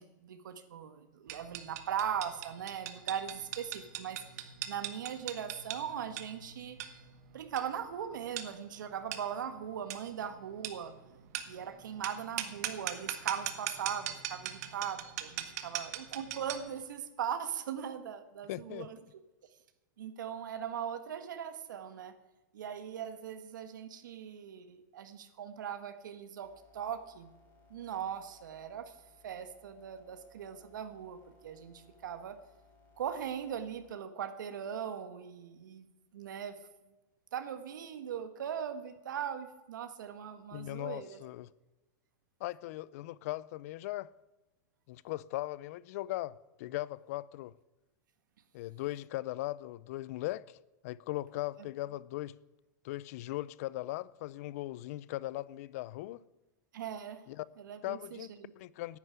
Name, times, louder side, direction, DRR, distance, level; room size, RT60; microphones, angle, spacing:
voice 1, 0.0-4.2 4.7-6.8 7.3-10.9 11.5-19.0 20.0-22.1 22.5-27.3 27.7-28.9 29.2-32.4 33.0-35.9 36.1-36.6 37.3-41.2 56.7-57.2 57.6-58.5, right 8 dB, 80° right, 1.6 m, -39 dB
sound 1, 1.3-16.8, right 11 dB, 55° right, 1.7 m, -41 dB
voice 2, 18.5-18.9 40.5-41.5 42.4-44.1 44.9-47.5 48.5-50.6 50.8-52.4 52.8-56.2 57.3-57.5 57.8-59.0, left 17 dB, 50° left, 0.5 m, -39 dB
sound 2, 26.4-33.9, left 3 dB, 20° left, 3.6 m, -64 dB
10.5 x 9.4 x 9.6 m
supercardioid pair, 150°, 10 cm